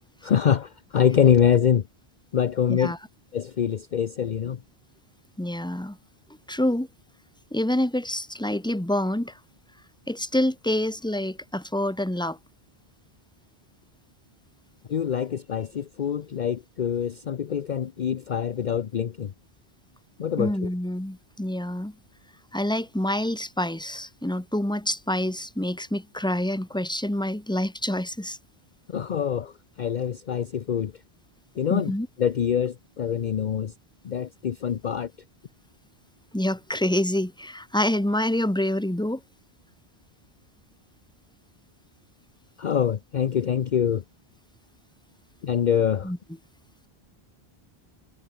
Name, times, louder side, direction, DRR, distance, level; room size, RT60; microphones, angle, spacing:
voice 1, 0.2-1.9 2.3-2.9 3.3-4.6 14.9-19.3 20.2-20.7 28.9-30.9 31.6-33.7 34.0-35.1 42.6-44.0 45.4-46.1, left 8 dB, 50° left, 0.8 m, -25 dB
voice 2, 5.4-6.0 6.5-6.9 7.5-9.3 10.1-12.4 20.4-21.9 22.5-28.4 31.7-32.1 36.3-39.2 46.0-46.2, left 1 dB, 5° left, 1.6 m, -27 dB
omnidirectional pair, 1.0 m